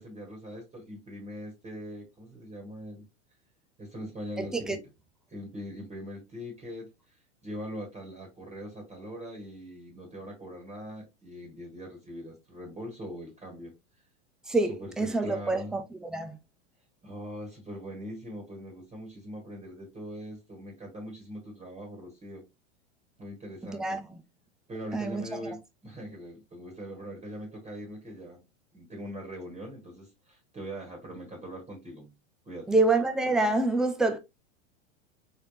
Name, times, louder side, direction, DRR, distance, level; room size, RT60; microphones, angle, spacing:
voice 1, 0.0-3.1 3.8-4.8 5.3-13.7 14.7-15.8 17.0-22.4 23.2-24.0 24.7-28.4 28.7-32.1 32.5-32.8, equal, 20° right, 1.7 m, -41 dB
voice 2, 4.4-4.8 14.5-16.4 23.6-24.2 24.9-25.4 32.7-34.2, right 2 dB, ahead, 0.4 m, -27 dB
3.8 x 3.4 x 2.6 m
hypercardioid pair, 100°, 36 cm